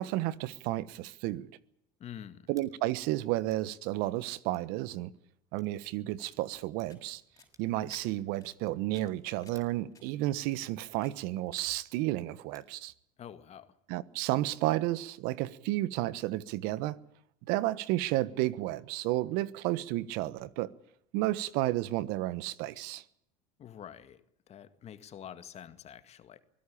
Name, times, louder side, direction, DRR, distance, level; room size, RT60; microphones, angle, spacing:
voice 1, 0.0-1.5 2.5-5.1 5.5-7.2 7.6-12.9 13.9-17.0 17.5-20.7 21.1-23.0, right 16 dB, 70° right, 1.2 m, -32 dB
voice 2, 2.0-2.5 13.2-13.8 23.6-24.2 24.5-26.4, left 9 dB, 40° left, 2.0 m, -47 dB
sound 1, 2.5-2.7 3.5-3.7 4.5-4.7 5.5-5.8 6.5-6.9 7.5-7.8 8.6-8.9 9.5-9.8 10.5-10.7 11.6-11.9 12.5-12.7, right 3 dB, 20° right, 4.8 m, -62 dB
sound 2, 6.0-11.9, left 4 dB, 20° left, 6.1 m, -61 dB
24.0 x 17.0 x 8.6 m
supercardioid pair, 105°, 16 cm